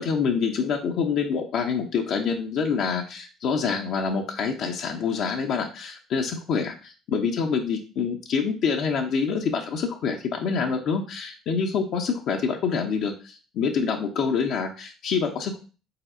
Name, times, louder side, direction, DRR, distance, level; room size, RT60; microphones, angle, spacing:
voice 1, 0.0-15.6, left 5 dB, 60° left, 2 dB, 0.6 m, -26 dB
4.1 x 4.0 x 2.6 m, 0.35 s
hypercardioid pair, 55°, 0 cm